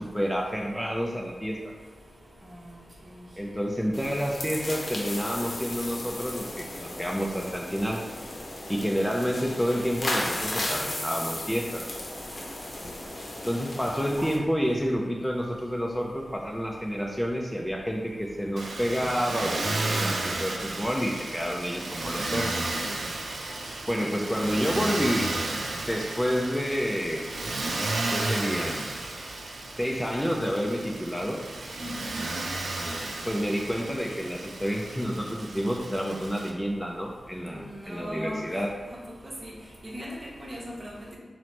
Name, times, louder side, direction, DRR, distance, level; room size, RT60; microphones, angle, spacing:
voice 1, 0.0-1.7 3.4-8.0 8.7-11.9 13.4-22.5 23.9-25.3 25.9-27.3 28.1-28.9 29.8-31.7 33.3-38.7, equal, 5° left, 0 dB, 0.4 m, -29 dB
sound 1, 3.9-14.4, left 1 dB, 55° left, 0.6 m, -35 dB
Motor vehicle (road), 18.6-36.5, right 2 dB, 90° right, 0.4 m, -33 dB
voice 2, 31.8-32.2 37.5-38.4 39.2-39.5 39.8-41.2, equal, 45° right, -3 dB, 0.8 m, -38 dB
3.0 x 2.1 x 4.1 m, 1.3 s
cardioid pair, 55°, 0 cm